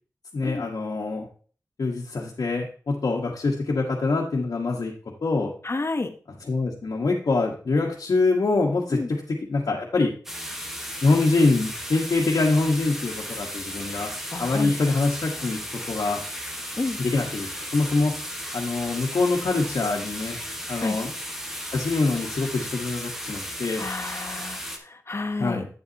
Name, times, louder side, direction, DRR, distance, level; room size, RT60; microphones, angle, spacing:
voice 1, 0.3-1.3 1.8-4.9 5.2-5.5 6.5-9.2 9.5-10.1 11.0-14.1 14.4-15.6 15.9-16.2 17.0-18.1 18.5-20.4 20.7-21.1 21.7-23.8 25.4-25.7, left 3 dB, 80° left, -4 dB, 1.3 m, -24 dB
voice 2, 5.6-6.1 8.9-9.1 14.3-14.7 16.8-17.0 20.8-21.0 23.8-25.6, left 3 dB, 45° left, 8 dB, 1.0 m, -30 dB
sound 1, 10.3-24.8, equal, 5° right, 1.3 m, -35 dB
8.9 x 8.0 x 2.8 m, 0.40 s
wide cardioid pair, 80°, 6 cm